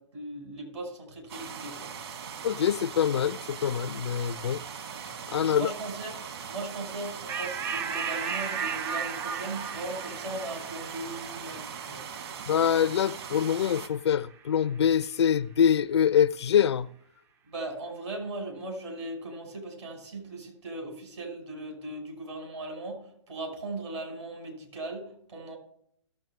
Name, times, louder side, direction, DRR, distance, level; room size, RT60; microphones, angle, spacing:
voice 1, 0.0-1.9 5.5-6.2 6.5-12.0 17.5-25.6, right 2 dB, 70° right, 5.7 m, -38 dB
sound 1, 1.3-13.9, right 7 dB, 55° right, 1.8 m, -40 dB
voice 2, 2.4-4.6 5.3-5.7 12.5-16.9, left 8 dB, 60° left, 0.4 m, -25 dB
sound 2, 7.3-14.2, right 6 dB, 15° right, 0.3 m, -36 dB
18.0 x 7.4 x 3.6 m
figure-of-eight pair, 135°, 16 cm